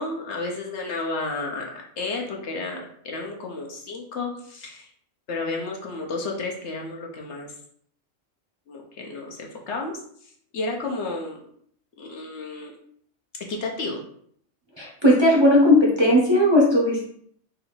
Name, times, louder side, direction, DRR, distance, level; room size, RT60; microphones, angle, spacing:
voice 1, 0.0-4.9 5.3-7.5 8.7-10.0 10.5-11.4 12.0-12.7 13.5-14.0, left 3 dB, 65° left, 0 dB, 1.1 m, -32 dB
voice 2, 14.8-17.0, left 1 dB, 25° right, -3 dB, 0.7 m, -17 dB
3.9 x 2.7 x 4.3 m, 0.64 s
omnidirectional pair, 1.3 m